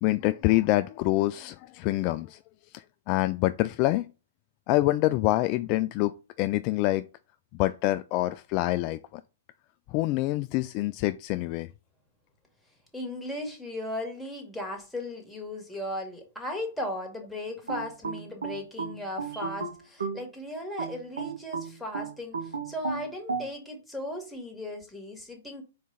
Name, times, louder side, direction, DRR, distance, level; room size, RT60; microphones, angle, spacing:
voice 1, 0.0-2.4 2.7-4.1 4.7-6.1 6.4-7.1 7.6-9.2 9.9-11.7, left 17 dB, 40° left, 0.3 m, -26 dB
voice 2, 12.9-25.6, left 1 dB, ahead, 2.0 m, -36 dB
sound 1, 17.7-20.3 20.8-23.5, right 5 dB, 85° right, 1.5 m, -34 dB
4.6 x 4.1 x 5.5 m
hypercardioid pair, 120°, 0 cm